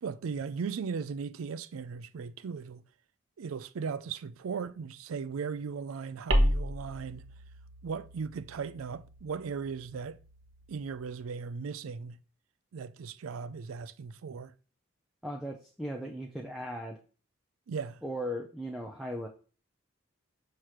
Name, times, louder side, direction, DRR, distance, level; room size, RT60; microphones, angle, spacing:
voice 1, 0.0-2.8 3.4-7.3 7.8-10.2 10.7-12.2 12.7-14.5 17.7-18.0, right 5 dB, 85° right, 0.4 m, -37 dB
sound 1, 6.3-11.1, equal, 65° right, 1.0 m, -33 dB
voice 2, 15.2-17.0 18.0-19.3, equal, ahead, 0.5 m, -37 dB
6.5 x 3.1 x 5.7 m
head